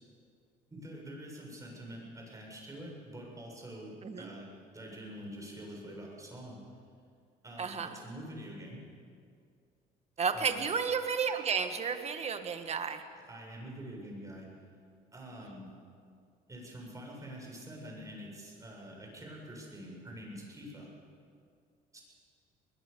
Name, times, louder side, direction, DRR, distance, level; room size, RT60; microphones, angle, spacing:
voice 1, 0.7-6.6 7.4-8.8 10.3-10.7 13.1-14.5 15.1-15.7 16.5-20.9 21.9-22.0, equal, 20° right, -1 dB, 7.5 m, -46 dB
voice 2, 4.0-4.4 7.6-7.9 10.2-13.0, right 6 dB, 40° right, 7 dB, 1.9 m, -32 dB
22.5 x 21.0 x 7.0 m, 2.2 s
cardioid pair, 110°, 17 cm